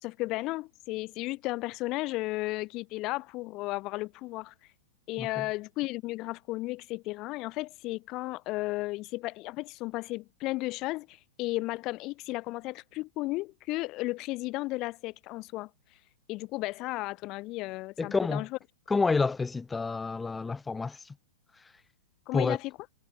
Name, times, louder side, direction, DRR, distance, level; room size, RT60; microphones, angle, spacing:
voice 1, 0.0-4.5 5.1-15.7 16.3-18.5 22.3-22.7, left 20 dB, 40° left, 1.5 m, -34 dB
voice 2, 18.0-18.5 18.9-21.1 22.3-22.6, left 4 dB, 10° left, 1.0 m, -29 dB
hypercardioid pair, 115°, 0 cm